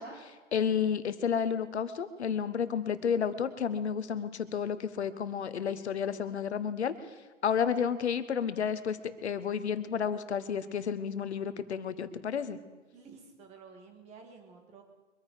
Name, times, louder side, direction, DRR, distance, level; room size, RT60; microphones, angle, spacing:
voice 1, 0.0-6.9 7.4-12.6, left 7 dB, 60° left, 12 dB, 1.3 m, -31 dB
voice 2, 12.9-14.8, right 5 dB, 20° right, 4 dB, 2.2 m, -52 dB
23.5 x 9.3 x 4.9 m, 1.2 s
figure-of-eight pair, 135°, 37 cm